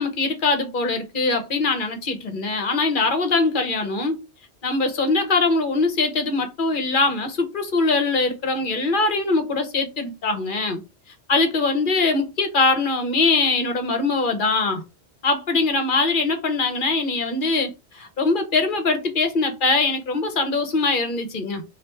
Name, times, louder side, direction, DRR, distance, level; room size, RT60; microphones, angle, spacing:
voice 1, 0.0-4.2 4.6-10.8 11.3-14.8 15.2-21.6, left 3 dB, 50° left, 1.0 m, -22 dB
3.3 x 2.5 x 4.4 m
omnidirectional pair, 1.1 m